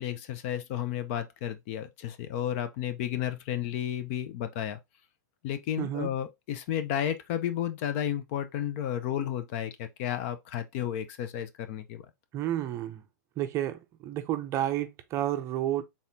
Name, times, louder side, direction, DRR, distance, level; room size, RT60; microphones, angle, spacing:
voice 1, 0.0-4.8 5.4-12.0, left 10 dB, 45° left, 0.6 m, -32 dB
voice 2, 5.8-6.1 12.3-13.0 13.4-15.8, right 12 dB, 30° right, 0.6 m, -31 dB
4.1 x 3.6 x 2.7 m
hypercardioid pair, 135°, 10 cm